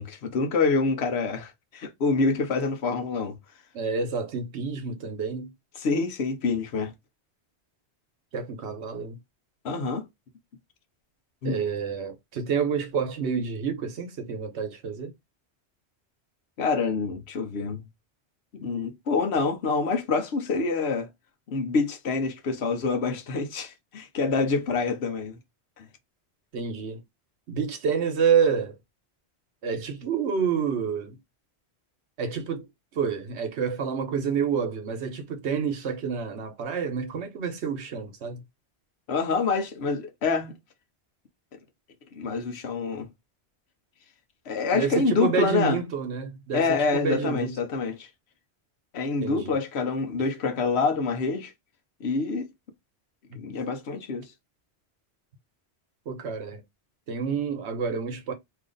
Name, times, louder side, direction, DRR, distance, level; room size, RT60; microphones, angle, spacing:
voice 1, 0.0-3.4 5.7-6.9 9.6-10.1 11.4-11.6 16.6-17.8 18.6-21.1 21.5-25.4 25.8-25.9 39.1-40.5 42.1-43.1 44.5-45.8 46.5-48.1 48.9-51.5 52.0-52.5 53.3-54.3, left 4 dB, 75° left, 1.0 m, -26 dB
voice 2, 3.7-5.5 8.3-9.2 11.4-15.1 26.5-27.0 27.5-28.8 29.6-31.2 32.2-32.7 32.9-38.4 44.7-47.6 49.2-49.6 53.3-53.4 56.1-56.6 57.1-58.3, right 6 dB, 85° right, 1.1 m, -28 dB
2.9 x 2.5 x 3.8 m
omnidirectional pair, 1.1 m